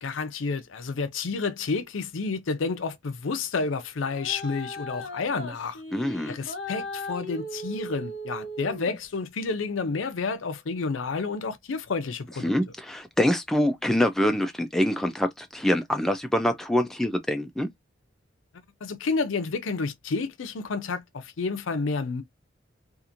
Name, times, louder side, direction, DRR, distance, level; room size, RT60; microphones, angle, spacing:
voice 1, 0.0-5.8 6.3-12.5 18.8-22.2, left 4 dB, 85° left, 0.5 m, -30 dB
sound 1, 4.1-9.1, left 1 dB, 60° left, 1.2 m, -37 dB
voice 2, 5.9-6.3 12.4-17.7, left 1 dB, ahead, 0.3 m, -25 dB
2.9 x 2.5 x 2.5 m
head